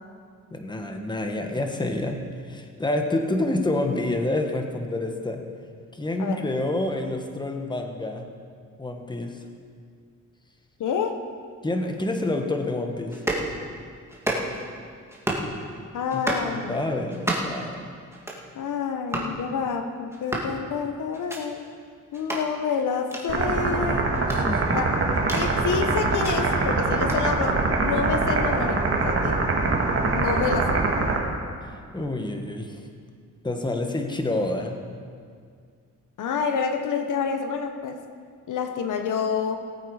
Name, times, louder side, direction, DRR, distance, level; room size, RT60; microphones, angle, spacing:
voice 1, 0.5-2.2 2.5-5.4 5.9-8.3 8.8-9.4 11.6-13.2 16.1-16.2 16.7-17.8 24.3-24.8 31.9-32.8 33.4-34.8, left 2 dB, 15° left, 4 dB, 1.3 m, -28 dB
voice 2, 10.8-11.2 15.9-16.8 18.5-21.7 22.1-24.1 24.7-24.9 25.3-29.5 30.1-31.1 36.2-38.0 38.5-39.6, left 6 dB, 75° left, 7 dB, 1.0 m, -28 dB
sound 1, 13.1-13.5 14.1-14.7 15.1-15.5 16.1-16.5 17.1-17.6 18.1-18.5 19.1-19.3 20.1-20.5 21.1-21.4 22.1-22.4 23.1-23.2 24.1-25.5 26.1-26.3 27.1-27.2, right 1 dB, 10° right, 2.1 m, -30 dB
sound 2, 23.3-31.2, right 3 dB, 45° right, 2.0 m, -23 dB
18.5 x 8.1 x 4.8 m, 2.1 s
cardioid pair, 100°, 31 cm